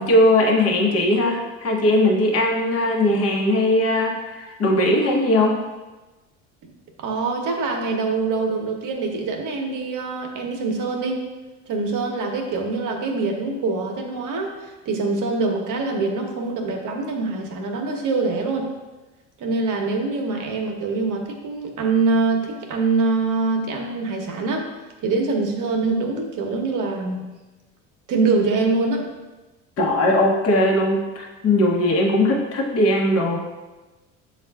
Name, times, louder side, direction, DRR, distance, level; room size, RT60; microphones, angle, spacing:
voice 1, 0.0-5.6 29.8-33.4, left 1 dB, 40° left, 0 dB, 0.9 m, -19 dB
voice 2, 7.0-11.2 11.7-18.7 19.4-24.7 25.0-27.3 28.1-29.1, right 3 dB, 55° right, 2 dB, 0.9 m, -24 dB
7.1 x 2.4 x 2.3 m, 1.1 s
supercardioid pair, 70°, 38 cm